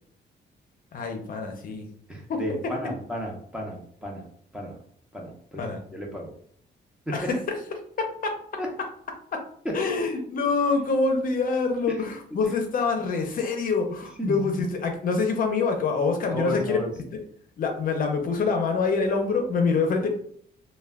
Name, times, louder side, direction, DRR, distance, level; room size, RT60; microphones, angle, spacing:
voice 1, 0.9-1.9 2.3-2.4 5.6-5.8 7.1-7.4 8.0-8.3 9.3-9.4 9.7-16.8 17.6-20.1, left 4 dB, 50° left, 4 dB, 0.5 m, -25 dB
voice 2, 2.1-4.3 4.5-4.8 5.1-5.6 5.9-6.3 7.2-7.3 8.6-8.7 11.9-12.0 14.2-14.5 16.3-16.9, right 1 dB, 5° right, -2 dB, 0.5 m, -33 dB
2.2 x 2.2 x 3.3 m, 0.62 s
cardioid pair, 160°, 19 cm